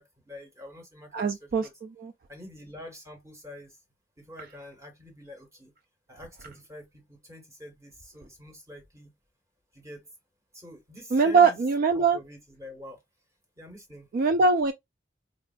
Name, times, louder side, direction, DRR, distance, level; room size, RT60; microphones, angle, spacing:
voice 1, 0.0-1.7 2.3-3.8 4.2-5.7 6.1-9.1 9.7-10.1 10.5-11.6 11.9-13.0 13.6-14.1, left 1 dB, 15° right, 1.2 m, -46 dB
voice 2, 1.1-2.1 11.1-12.2 14.1-14.7, right 4 dB, 55° right, 0.3 m, -22 dB
4.2 x 2.3 x 2.4 m
head